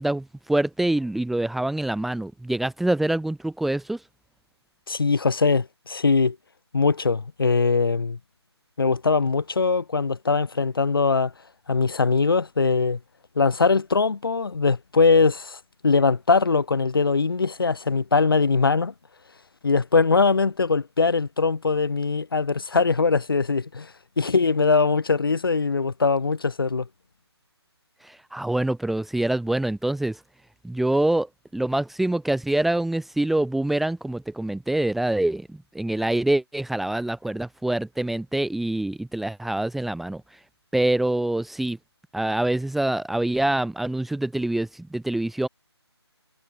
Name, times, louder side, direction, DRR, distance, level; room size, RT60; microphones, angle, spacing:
voice 1, 0.0-4.0 28.0-30.2 30.6-31.3 31.5-40.2 40.7-41.8 42.1-45.5, right 1 dB, ahead, 1.6 m, -25 dB
voice 2, 4.9-6.4 6.7-8.2 8.8-11.3 11.7-13.0 13.4-18.9 19.6-26.9, left 4 dB, 55° left, 4.3 m, -21 dB
figure-of-eight pair, 150°, 14 cm